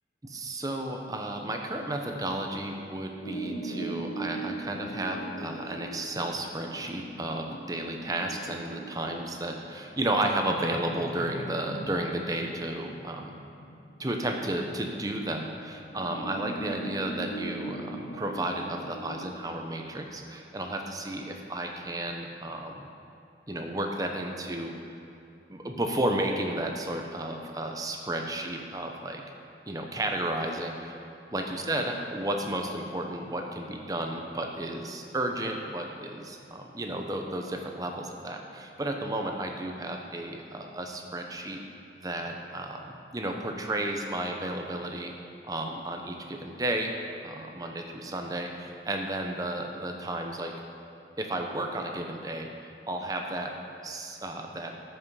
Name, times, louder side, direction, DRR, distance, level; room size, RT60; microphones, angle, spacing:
voice 1, 0.3-13.4 14.0-22.9 23.5-24.9 25.5-29.2 29.7-31.0 31.3-41.6 42.0-45.1 45.5-46.9 47.2-50.5 51.2-53.6 53.8-54.7, right 1 dB, 20° right, 3 dB, 0.7 m, -33 dB
sound 1, 3.2-15.0 15.9-19.9, right 1 dB, 60° left, 0.7 m, -40 dB
12.5 x 5.6 x 5.5 m, 2.6 s
head